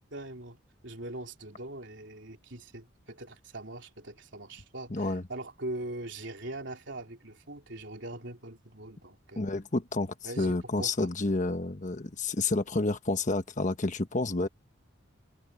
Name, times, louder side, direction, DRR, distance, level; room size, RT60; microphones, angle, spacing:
voice 1, 0.1-0.6 0.8-9.5 10.2-11.1, right 1 dB, 65° right, 3.7 m, -41 dB
voice 2, 4.9-5.2 9.4-14.5, left 2 dB, 40° left, 1.2 m, -29 dB
head